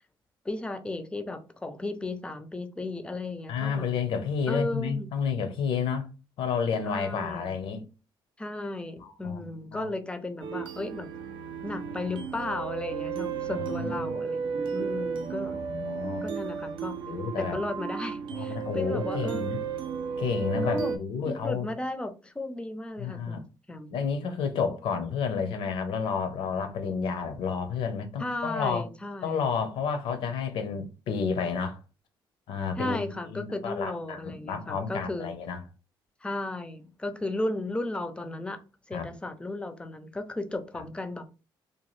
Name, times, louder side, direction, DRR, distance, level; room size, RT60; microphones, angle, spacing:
voice 1, 0.4-3.9 4.5-5.1 6.8-7.5 8.4-11.1 11.6-15.6 16.2-16.9 17.4-19.6 20.6-21.0 21.2-24.0 28.2-29.5 32.8-35.3 36.2-38.6 38.9-41.3, left 2 dB, 10° left, 0.4 m, -35 dB
voice 2, 3.5-6.1 6.4-7.9 9.0-9.9 13.5-14.2 15.4-16.2 17.1-17.6 18.3-19.6 20.2-21.7 23.0-23.4 23.9-28.8 29.2-31.8 32.5-35.6 38.9-39.1, left 6 dB, 80° left, 0.6 m, -31 dB
sound 1, 10.4-21.0, right 6 dB, 75° right, 0.5 m, -33 dB
2.8 x 2.3 x 3.0 m
cardioid pair, 120°, 9 cm